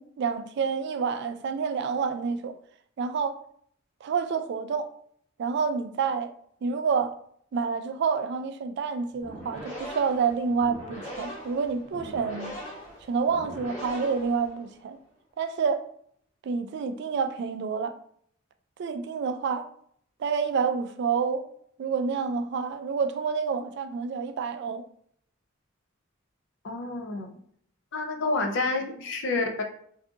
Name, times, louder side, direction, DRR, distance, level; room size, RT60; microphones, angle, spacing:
voice 1, 0.0-2.5 3.0-3.4 4.0-4.9 5.4-6.3 6.6-7.1 7.5-12.5 13.1-15.0 15.4-15.8 16.4-17.9 18.8-19.7 20.2-21.5 21.8-24.8, right 5 dB, 55° right, 0.3 m, -28 dB
sound 1, 9.1-14.9, equal, 35° left, 1.3 m, -41 dB
voice 2, 26.6-27.3 27.9-29.6, left 3 dB, 60° left, 0.5 m, -29 dB
2.6 x 2.4 x 3.5 m
head